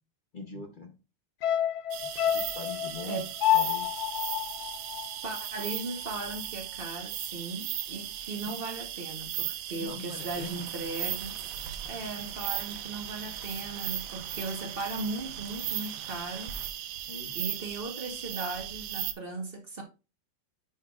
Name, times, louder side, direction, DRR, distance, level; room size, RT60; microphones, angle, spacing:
voice 1, 0.3-0.9 2.3-3.3 3.5-4.1 8.5-8.6 9.8-10.7 17.1-17.6, left 4 dB, 45° left, 0.6 m, -43 dB
sound 1, 1.4-5.8 6.1-6.2, left 12 dB, 70° left, 0.9 m, -29 dB
sound 2, 1.9-19.1, right 12 dB, 85° right, 1.3 m, -37 dB
voice 2, 5.2-11.4 11.8-16.6 17.3-19.8, right 3 dB, 35° right, 1.0 m, -37 dB
sound 3, 10.1-16.7, right 6 dB, 60° right, 1.0 m, -47 dB
9.8 x 4.5 x 2.4 m
omnidirectional pair, 2.0 m